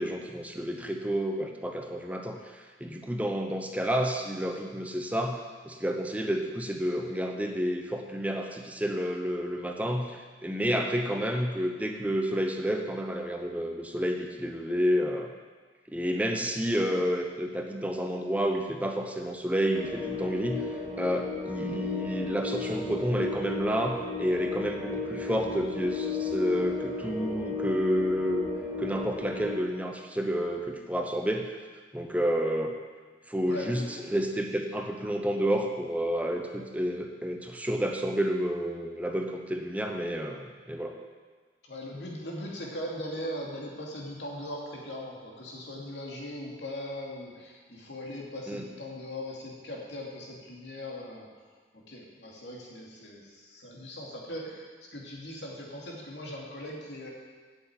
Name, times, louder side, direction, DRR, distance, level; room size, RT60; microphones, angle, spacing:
voice 1, 0.0-15.3 15.9-20.7 21.0-28.5 28.8-31.6 31.9-32.7 33.3-41.0 48.5-48.6, equal, 10° right, 3 dB, 0.7 m, -30 dB
sound 1, 19.6-29.6, left 3 dB, 15° left, 2.9 m, -34 dB
voice 2, 33.5-33.9 41.6-51.3 51.7-57.1, left 1 dB, 85° left, -2 dB, 2.6 m, -39 dB
8.3 x 8.1 x 8.9 m, 1.4 s
head